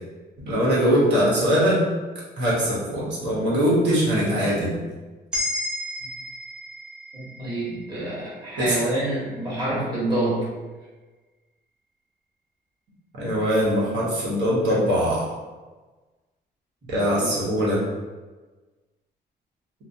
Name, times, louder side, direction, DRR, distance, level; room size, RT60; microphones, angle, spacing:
voice 1, 0.5-1.8 2.4-4.7 8.6-8.9 13.2-15.3 16.9-17.8, equal, 70° right, -6 dB, 1.1 m, -21 dB
sound 1, 5.3-9.6, left 1 dB, 5° right, 0.5 m, -34 dB
voice 2, 7.1-10.5 17.2-17.3, right 1 dB, 25° right, -10 dB, 1.4 m, -27 dB
3.0 x 2.0 x 2.6 m, 1.3 s
cardioid pair, 135°, 18 cm